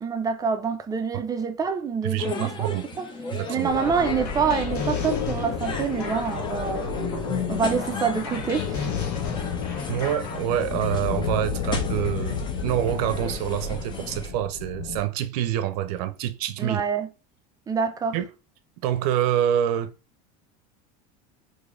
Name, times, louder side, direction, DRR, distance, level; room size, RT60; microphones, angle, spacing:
voice 1, 0.0-3.1 3.5-6.9 7.5-8.9 16.6-17.1 17.7-18.2, right 6 dB, 20° right, 0.4 m, -26 dB
voice 2, 2.0-2.8 3.3-3.7 9.9-16.8 18.1-18.3 18.8-19.9, right 11 dB, 80° right, 0.5 m, -26 dB
sound 1, 2.2-14.3, left 5 dB, 25° left, 0.8 m, -36 dB
sound 2, 3.7-10.4, left 3 dB, 85° left, 1.3 m, -34 dB
sound 3, 3.8-15.0, left 7 dB, 70° left, 0.6 m, -32 dB
3.1 x 2.7 x 3.7 m
supercardioid pair, 130°, 20 cm